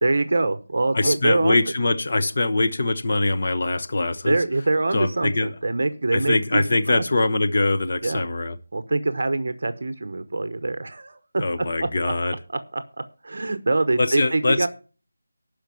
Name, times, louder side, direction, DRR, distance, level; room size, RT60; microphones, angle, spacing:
voice 1, 0.0-1.6 4.2-7.0 8.0-8.2 8.7-12.1 12.5-12.8 13.2-14.7, right 2 dB, 50° right, 0.9 m, -24 dB
voice 2, 0.9-4.4 4.9-5.5 6.1-8.6 11.4-12.3 14.0-14.7, left 2 dB, 40° left, 1.1 m, -23 dB
12.0 x 5.2 x 7.1 m
figure-of-eight pair, 175°, 0 cm